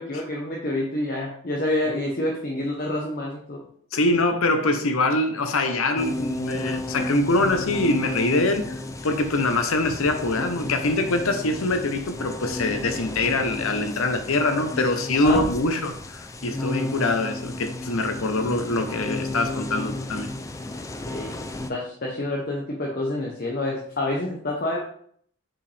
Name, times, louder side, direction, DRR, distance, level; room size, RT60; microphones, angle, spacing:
voice 1, 0.0-3.6 15.1-15.4 20.7-21.3 21.7-24.8, left 1 dB, 45° left, 0.9 m, -28 dB
voice 2, 3.9-20.3, left 2 dB, 80° left, 0.8 m, -24 dB
sound 1, 6.0-21.7, left 2 dB, 15° left, 0.3 m, -33 dB
5.7 x 4.8 x 3.3 m
head